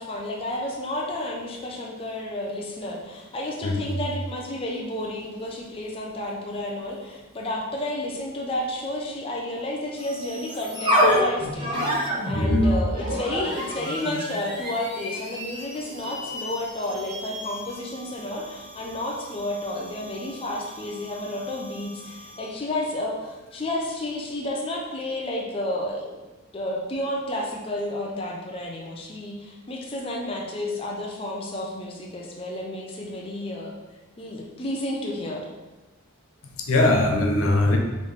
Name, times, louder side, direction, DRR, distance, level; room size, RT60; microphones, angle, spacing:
voice 1, 0.0-12.0 12.2-26.2 26.5-33.7 34.2-35.5, left 1 dB, 25° left, -2 dB, 0.4 m, -31 dB
sound 1, 10.0-22.5, equal, 20° right, 1.0 m, -29 dB
voice 2, 11.8-12.8 13.2-13.3 16.0-16.4 36.5-37.8, left 2 dB, 80° left, 2 dB, 0.6 m, -23 dB
4.0 x 3.1 x 3.3 m, 1.1 s
head